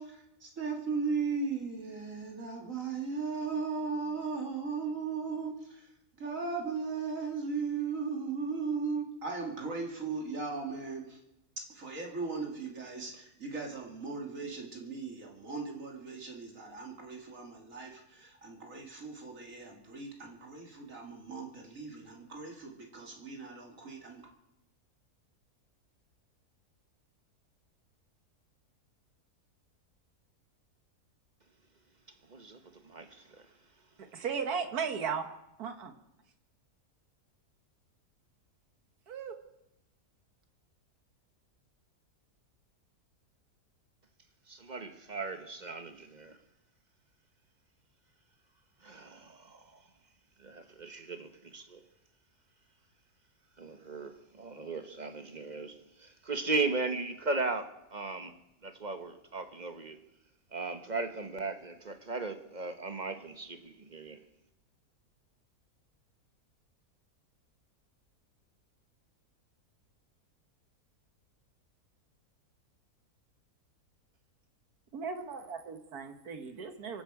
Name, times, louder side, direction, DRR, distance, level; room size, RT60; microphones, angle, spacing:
voice 1, 0.0-5.9 6.2-11.2 11.6-24.3, right 4 dB, 55° right, 2.7 m, -37 dB
voice 2, 32.3-33.5 44.5-46.4 48.8-49.9 50.4-51.8 53.6-58.3 58.6-60.0 60.5-64.2, right 3 dB, 35° right, 1.0 m, -37 dB
voice 3, 34.0-35.2 35.6-35.9 39.1-39.3 74.9-77.0, right 6 dB, 75° right, 1.8 m, -36 dB
24.0 x 11.0 x 4.8 m
omnidirectional pair, 1.6 m